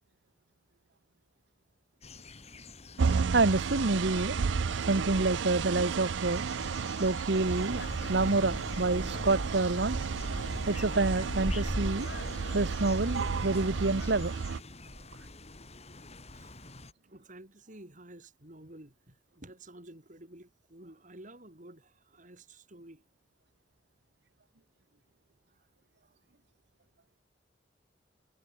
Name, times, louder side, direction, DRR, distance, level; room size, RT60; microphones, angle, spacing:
sound 1, 2.0-16.9, left 1 dB, 35° left, 4.9 m, -44 dB
sound 2, 3.0-14.6, right 5 dB, 85° right, 0.5 m, -33 dB
voice 1, 3.3-4.3 4.9-6.4 7.0-10.0 10.7-12.1 12.5-14.3, right 3 dB, 65° right, 1.1 m, -28 dB
sound 3, 7.4-14.3, left 1 dB, 65° left, 3.3 m, -41 dB
voice 2, 16.3-16.8 17.1-23.0 25.5-25.6 26.0-26.2, right 1 dB, 45° right, 5.2 m, -52 dB
head